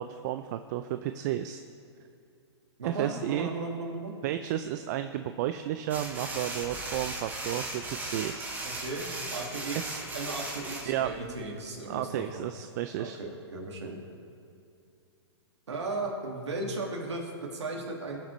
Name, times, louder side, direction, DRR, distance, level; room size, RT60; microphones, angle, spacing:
voice 1, 0.0-1.6 2.8-3.5 4.2-8.5 9.8-9.9 10.9-11.1 11.9-13.2, right 12 dB, 40° right, 9 dB, 0.4 m, -32 dB
voice 2, 2.8-4.1 8.6-12.5 13.0-14.0 15.7-18.2, right 2 dB, 85° right, -1 dB, 1.9 m, -36 dB
sound 1, 5.9-11.4, right 2 dB, 15° right, 1.8 m, -37 dB
20.5 x 7.4 x 3.1 m, 2.5 s
hypercardioid pair, 135°, 14 cm